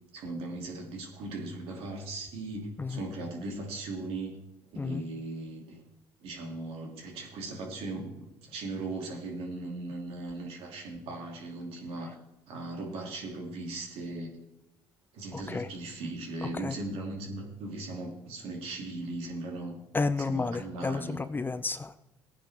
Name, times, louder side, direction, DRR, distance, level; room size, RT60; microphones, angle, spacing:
voice 1, 0.1-4.4 4.7-5.8 6.2-12.2 12.5-14.4 15.1-19.8 20.2-21.2, right 2 dB, 70° right, 1 dB, 2.6 m, -38 dB
voice 2, 15.3-15.7 16.4-16.8 19.9-22.0, left 3 dB, 20° left, 12 dB, 0.6 m, -32 dB
15.5 x 9.5 x 3.5 m, 0.92 s
supercardioid pair, 80°, 10 cm